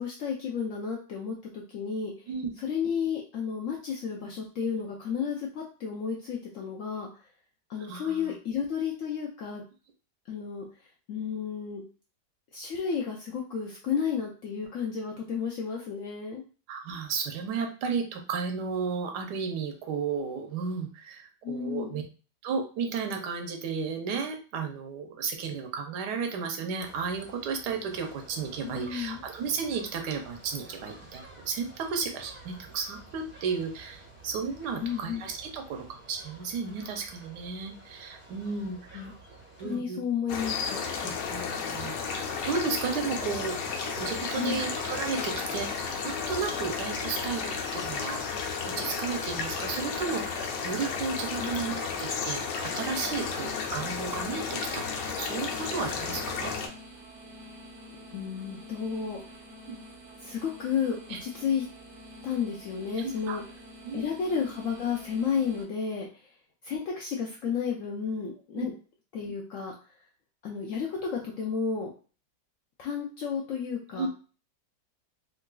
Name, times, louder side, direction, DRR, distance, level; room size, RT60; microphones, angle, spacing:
voice 1, 0.0-2.1 2.6-7.3 7.7-9.6 10.3-10.6 11.1-11.8 12.5-16.4 21.4-22.0 28.7-29.2 34.8-35.2 38.9-39.1 39.6-40.8 44.4-44.6 51.4-51.5 58.1-59.2 60.2-61.7 62.2-63.4 63.9-66.3 66.6-68.7 69.1-69.7 70.4-71.9 72.8-74.1, left 6 dB, 70° left, -1 dB, 0.7 m, -32 dB
voice 2, 7.9-8.3 16.7-22.0 22.4-39.0 39.6-40.0 41.3-48.2 48.8-54.8 55.2-56.5 59.7-59.8 61.1-61.2 63.0-63.4 63.8-64.1 68.5-68.7 74.0-74.1, right 5 dB, 80° right, 4 dB, 1.2 m, -33 dB
sound 1, 26.8-39.8, right 2 dB, 15° right, 0.5 m, -51 dB
sound 2, 40.3-56.7, left 5 dB, 85° left, 1.3 m, -33 dB
sound 3, 52.8-65.6, left 1 dB, 60° right, 0.9 m, -48 dB
3.8 x 2.5 x 2.2 m, 0.37 s
omnidirectional pair, 1.9 m